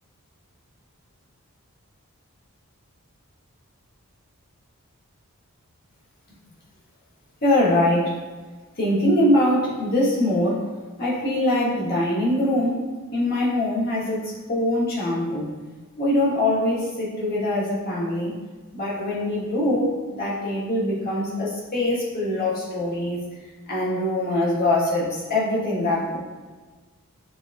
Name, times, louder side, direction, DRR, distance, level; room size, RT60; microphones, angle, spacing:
voice 1, 7.4-8.2 8.8-10.7 11.0-15.5 16.0-18.3 18.7-23.2 23.7-26.2, left 1 dB, 45° left, -7 dB, 1.2 m, -23 dB
6.7 x 2.3 x 2.5 m, 1.4 s
head